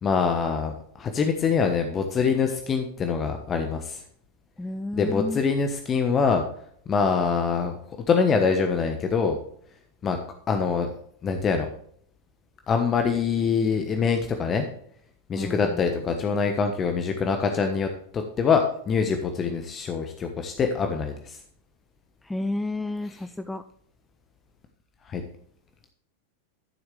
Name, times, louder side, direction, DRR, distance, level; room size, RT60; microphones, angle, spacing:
voice 1, 0.0-4.0 4.9-6.4 6.9-7.8 8.1-9.4 10.0-10.2 10.5-10.9 11.2-11.7 12.7-14.7 15.3-21.4 25.1-25.2, left 5 dB, 25° left, 5 dB, 1.2 m, -24 dB
voice 2, 4.6-5.4 15.3-16.0 22.2-23.6, left 2 dB, 5° left, 11 dB, 0.5 m, -31 dB
13.5 x 7.8 x 3.3 m, 0.64 s
figure-of-eight pair, 90°, 0 cm